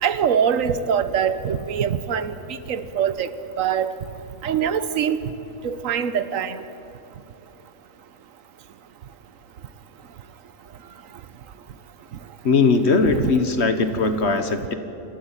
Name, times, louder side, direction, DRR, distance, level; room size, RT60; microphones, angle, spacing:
voice 1, 0.0-2.3 2.7-3.3 3.6-3.9 4.4-5.3 5.6-6.6 13.1-13.3, right 8 dB, 75° right, 13 dB, 1.2 m, -23 dB
voice 2, 12.4-14.7, left 4 dB, 55° left, 9 dB, 1.5 m, -19 dB
27.0 x 12.5 x 9.0 m, 3.0 s
omnidirectional pair, 1.4 m